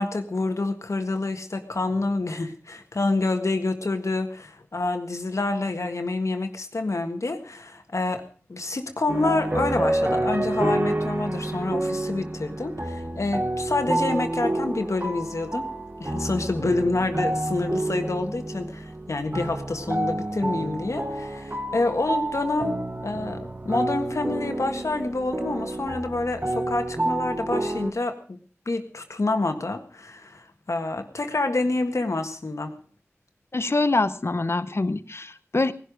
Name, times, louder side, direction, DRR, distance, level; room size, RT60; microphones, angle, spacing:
voice 1, 0.0-8.2 8.5-15.7 16.0-28.4 28.6-32.7, left 2 dB, 80° left, 6 dB, 1.7 m, -27 dB
sound 1, 9.1-27.9, right 1 dB, 35° right, 1.2 m, -29 dB
voice 2, 33.5-35.7, left 2 dB, 55° left, 12 dB, 0.9 m, -24 dB
19.0 x 11.5 x 5.1 m, 0.41 s
wide cardioid pair, 60°, 5 cm